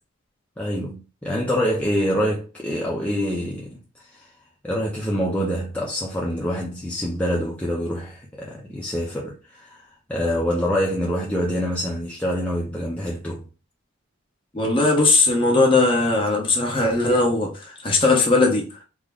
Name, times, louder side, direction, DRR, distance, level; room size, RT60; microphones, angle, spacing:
voice 1, 0.6-4.3 4.6-9.8 10.1-13.5, equal, 5° left, 0.5 m, -26 dB
voice 2, 14.5-18.8, left 3 dB, 25° left, 0.9 m, -19 dB
3.6 x 2.1 x 3.5 m
head